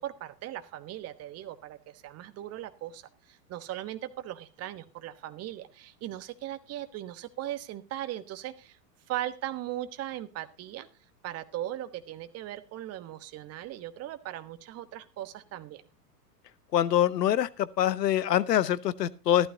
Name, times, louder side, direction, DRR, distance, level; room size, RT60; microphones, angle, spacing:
voice 1, 0.0-8.8 9.1-10.9 11.2-15.8, right 13 dB, 30° right, 1.2 m, -38 dB
voice 2, 16.7-19.5, left 11 dB, 80° left, 0.9 m, -25 dB
14.5 x 12.5 x 2.8 m
hypercardioid pair, 100°, 48 cm